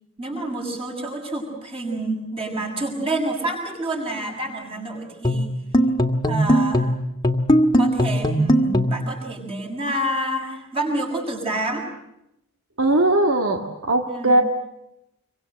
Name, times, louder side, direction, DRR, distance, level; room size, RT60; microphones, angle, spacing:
voice 1, 0.2-5.5 6.3-6.9 7.7-11.9 14.1-14.4, right 1 dB, 25° right, 1 dB, 6.9 m, -28 dB
sound 1, 5.2-9.1, equal, 20° left, 1.7 m, -19 dB
voice 2, 12.8-14.4, right 2 dB, 70° right, 4 dB, 2.1 m, -19 dB
27.0 x 24.5 x 8.0 m, 0.85 s
head